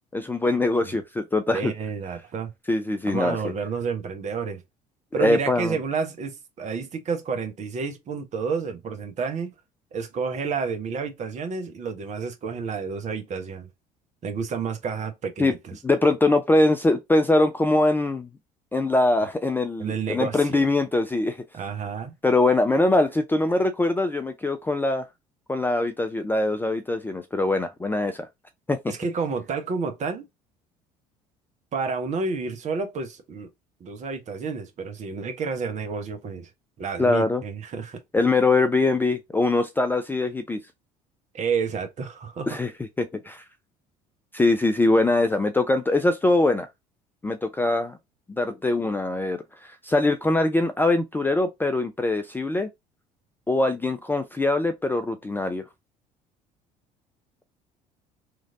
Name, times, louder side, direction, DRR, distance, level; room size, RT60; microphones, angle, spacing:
voice 1, 0.1-1.7 2.7-3.4 5.2-5.8 15.4-15.5 15.8-18.3 18.7-21.4 22.2-25.0 25.5-28.3 28.7-28.8 37.0-37.4 38.1-40.6 42.5-42.7 43.0-43.4 44.3-46.7 47.2-48.0 48.3-52.7 53.5-55.6, left 2 dB, 10° left, 0.4 m, -22 dB
voice 2, 1.5-2.5 3.0-4.6 5.1-9.5 9.9-13.7 14.2-15.7 19.8-20.7 21.5-22.1 28.9-30.3 31.7-33.5 33.8-36.5 36.8-38.0 41.3-42.6, right 5 dB, 35° right, 0.8 m, -30 dB
3.1 x 2.5 x 2.5 m
figure-of-eight pair, 60°, 20 cm